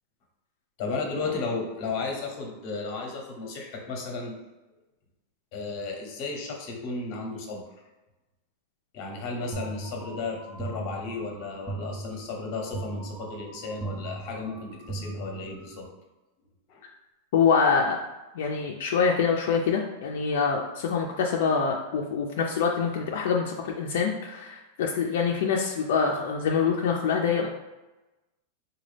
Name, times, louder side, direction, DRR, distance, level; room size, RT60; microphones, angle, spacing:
voice 1, 0.8-4.4 5.5-7.6 8.9-15.9 16.7-16.8, left 3 dB, 35° left, 1 dB, 0.8 m, -34 dB
sound 1, 9.5-15.9, right 3 dB, 5° right, 0.4 m, -38 dB
voice 2, 17.3-18.0 18.3-27.5, left 5 dB, 65° left, 0 dB, 0.4 m, -25 dB
4.0 x 2.2 x 3.3 m, 1.1 s
supercardioid pair, 175°, 0 cm